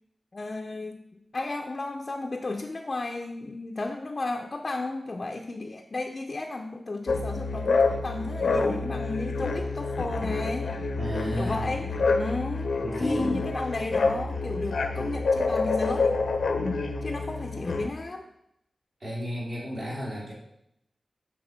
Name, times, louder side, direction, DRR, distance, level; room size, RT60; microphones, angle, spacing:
voice 1, 0.3-10.7 11.4-12.7 13.0-16.2 17.0-18.3, left 2 dB, 40° left, 2 dB, 0.5 m, -33 dB
sound 1, 7.1-17.9, left 3 dB, 85° left, 0.7 m, -27 dB
voice 2, 11.0-11.7 12.8-13.3 19.0-20.3, equal, 55° right, -6 dB, 2.8 m, -33 dB
7.8 x 3.6 x 5.7 m, 0.78 s
wide cardioid pair, 115°, 0 cm